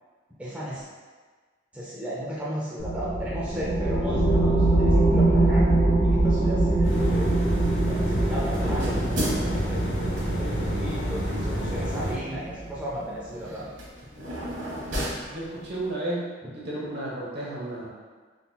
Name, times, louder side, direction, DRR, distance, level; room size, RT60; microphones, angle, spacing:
voice 1, 0.4-0.9 1.7-5.7 6.0-7.5 7.9-13.7 14.8-15.0 16.4-16.5, equal, 5° right, -8 dB, 0.5 m, -35 dB
sound 1, 2.8-12.8, right 2 dB, 50° left, 1.1 m, -24 dB
sound 2, 6.8-12.1, equal, 75° left, 0.9 m, -30 dB
sound 3, 7.0-15.9, equal, 90° right, 0.9 m, -36 dB
voice 2, 15.2-16.3 16.5-17.9, right 1 dB, 60° right, -6 dB, 0.9 m, -32 dB
3.8 x 2.7 x 2.2 m, 1.4 s
head